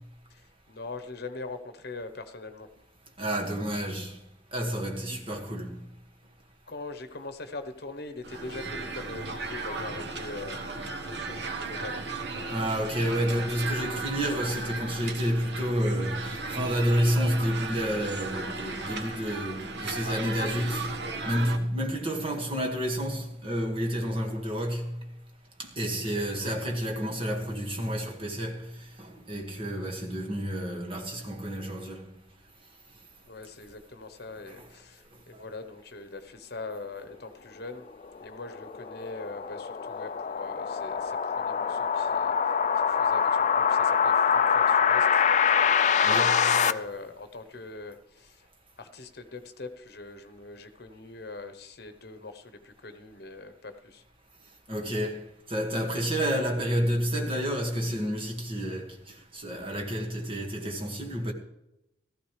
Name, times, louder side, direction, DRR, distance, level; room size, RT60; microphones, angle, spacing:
voice 1, 0.3-2.7 5.0-5.2 6.7-12.0 25.9-26.5 33.3-37.9 38.2-42.6 42.8-48.5 48.8-54.0, left 3 dB, 60° left, 1.0 m, -42 dB
voice 2, 3.2-4.2 4.5-5.8 12.5-20.9 21.2-25.0 25.6-32.1 34.5-34.7 46.0-46.4 54.7-61.3, equal, 30° right, 1.9 m, -30 dB
sound 1, 8.2-21.6, right 3 dB, 70° right, 1.2 m, -35 dB
sound 2, 38.0-46.7, left 7 dB, 40° left, 0.4 m, -24 dB
15.5 x 14.0 x 3.3 m
head